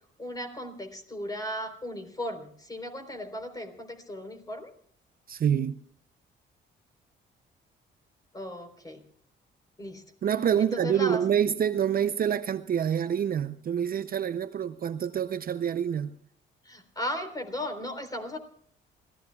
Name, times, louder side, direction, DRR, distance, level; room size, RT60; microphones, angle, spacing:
voice 1, 0.2-4.7 8.3-9.0 9.8-10.0 10.6-11.2 16.6-18.4, left 1 dB, 20° left, 3.8 m, -36 dB
voice 2, 5.3-5.8 10.2-16.1, right 9 dB, 45° right, 0.6 m, -27 dB
28.0 x 16.5 x 2.3 m
cardioid pair, 90°, 20 cm